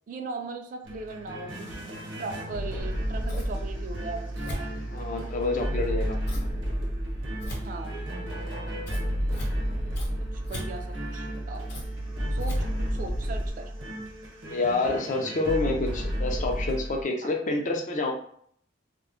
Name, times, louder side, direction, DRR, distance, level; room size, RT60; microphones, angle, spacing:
voice 1, 0.1-4.7 7.5-8.0 10.2-11.6 12.3-13.7 17.2-17.3, right 3 dB, 45° right, 5 dB, 0.3 m, -39 dB
sound 1, 0.8-17.0, equal, 75° right, 0.8 m, -33 dB
Scissors, 2.8-13.5, right 1 dB, 60° left, 0.8 m, -36 dB
voice 2, 4.9-6.2 14.5-18.1, left 2 dB, 40° left, 2 dB, 0.4 m, -28 dB
2.2 x 2.0 x 3.6 m, 0.63 s
head